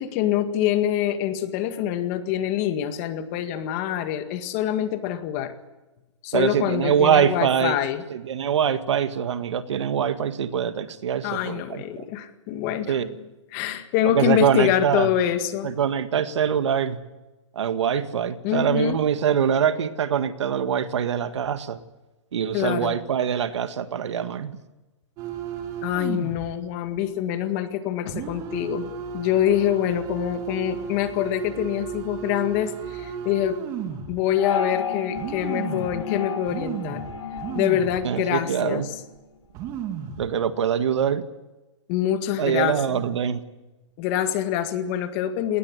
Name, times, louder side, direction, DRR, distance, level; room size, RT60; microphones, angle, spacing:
voice 1, 0.0-5.5 6.2-8.0 11.2-13.0 13.5-15.7 18.4-19.0 22.5-23.0 25.8-33.6 33.9-37.0 37.5-38.9 41.9-43.0 44.0-45.6, left 11 dB, 30° left, 9 dB, 1.9 m, -25 dB
voice 2, 6.3-7.8 8.1-12.0 12.9-13.2 14.0-15.1 15.6-17.0 17.5-21.8 22.3-24.5 38.0-38.9 40.2-41.2 42.4-43.4, right 8 dB, 70° right, 11 dB, 1.8 m, -24 dB
sound 1, 25.2-26.5 26.9-27.0 28.1-34.2 34.7-34.8 35.2-36.0 36.5-38.0 38.4-38.5 39.2-39.3 39.4-40.3 40.8-41.0, right 7 dB, 25° right, 2.5 m, -34 dB
sound 2, 34.4-39.0, left 6 dB, 80° left, 4.3 m, -32 dB
20.0 x 19.0 x 9.8 m, 1.1 s
hypercardioid pair, 165°, 16 cm